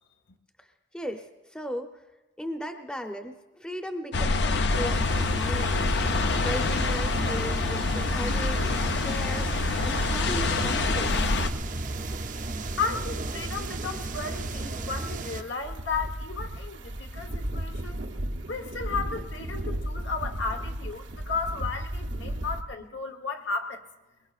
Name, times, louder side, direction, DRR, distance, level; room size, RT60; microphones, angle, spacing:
voice 1, 0.9-2.0 2.4-11.3, equal, 5° left, 5 dB, 0.7 m, -37 dB
sound 1, 4.1-11.5, left 3 dB, 65° left, 0.6 m, -26 dB
sound 2, 4.7-15.4, right 2 dB, 45° right, 0.6 m, -34 dB
sound 3, 11.1-22.6, right 1 dB, 80° right, 1.0 m, -36 dB
voice 2, 12.8-18.0 18.5-23.8, left 5 dB, 85° left, 5 dB, 1.2 m, -34 dB
22.5 x 21.5 x 2.5 m, 1.1 s
head